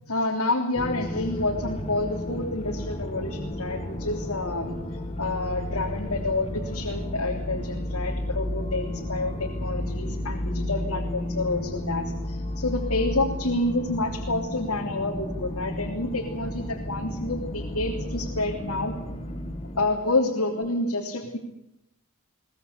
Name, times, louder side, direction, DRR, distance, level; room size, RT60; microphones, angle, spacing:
voice 1, 0.1-4.8 5.2-18.9 19.8-21.4, left 2 dB, 80° left, -1 dB, 3.4 m, -28 dB
sound 1, 0.7-19.9, left 1 dB, 30° left, 2.0 m, -32 dB
23.0 x 20.0 x 8.4 m, 0.83 s
head